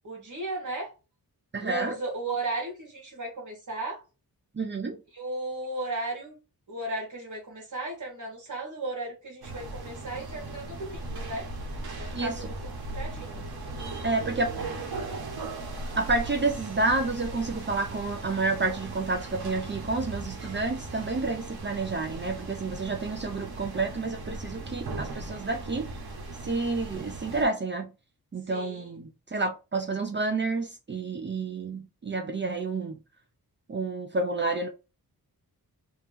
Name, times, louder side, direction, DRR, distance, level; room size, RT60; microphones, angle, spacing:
voice 1, 0.0-0.9 1.6-4.0 5.1-6.4 6.7-11.5 12.0-12.5 13.0-13.4 22.8-22.9 28.5-28.9, right 2 dB, 50° right, 1.8 m, -35 dB
voice 2, 1.5-2.0 4.5-5.0 12.1-12.5 14.0-14.5 16.0-25.9 26.4-27.9 28.3-33.0 33.7-34.7, right 3 dB, 30° right, 0.5 m, -29 dB
sound 1, 9.4-27.4, right 2 dB, 75° right, 1.2 m, -38 dB
3.1 x 2.9 x 3.5 m
wide cardioid pair, 130°, 38 cm